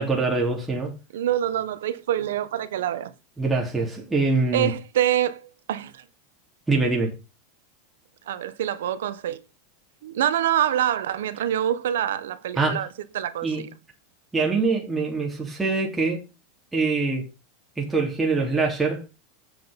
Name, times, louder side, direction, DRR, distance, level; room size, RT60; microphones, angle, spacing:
voice 1, 0.0-0.9 3.4-4.7 6.7-7.1 12.5-12.8 13.4-13.7 14.3-16.2 16.7-17.3 17.8-19.0, right 3 dB, 10° right, 3.1 m, -24 dB
voice 2, 1.1-3.1 4.5-6.0 8.3-9.4 10.0-12.9 13.1-13.7, right 11 dB, 80° right, 1.1 m, -25 dB
7.8 x 5.9 x 5.3 m
hypercardioid pair, 110°, 0 cm